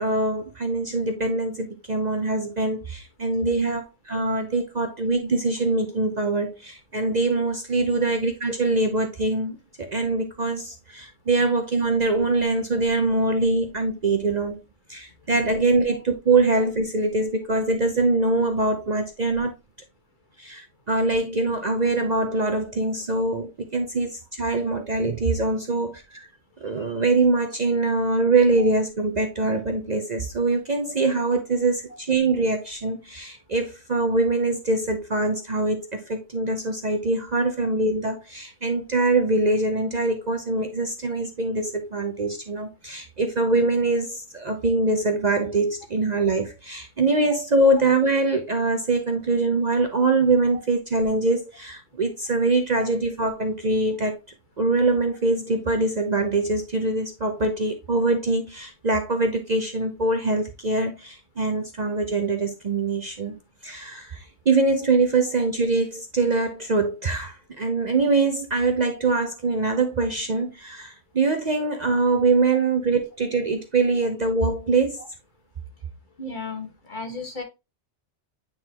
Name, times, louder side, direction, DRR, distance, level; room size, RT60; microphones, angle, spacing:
voice 1, 0.0-14.6 14.9-19.5 20.4-26.3 26.6-54.2 54.6-75.0, right 3 dB, 40° right, 0.7 m, -23 dB
voice 2, 76.2-77.4, left 3 dB, 45° left, 1.5 m, -34 dB
8.9 x 3.9 x 2.9 m
omnidirectional pair, 1.2 m